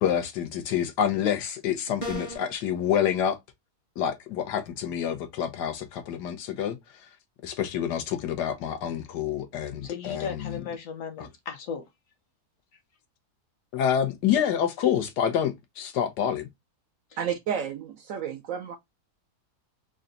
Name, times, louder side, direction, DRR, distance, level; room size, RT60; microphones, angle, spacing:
voice 1, 0.0-3.4 4.0-6.8 7.4-10.6 11.2-11.3 13.7-16.5, left 9 dB, 80° left, 1.4 m, -27 dB
sound 1, 2.0-2.5, equal, 30° left, 0.6 m, -34 dB
voice 2, 9.8-11.9 17.1-17.3, left 6 dB, 60° left, 1.1 m, -36 dB
voice 3, 17.2-18.8, right 8 dB, 70° right, 0.8 m, -31 dB
3.9 x 2.2 x 3.7 m
omnidirectional pair, 1.8 m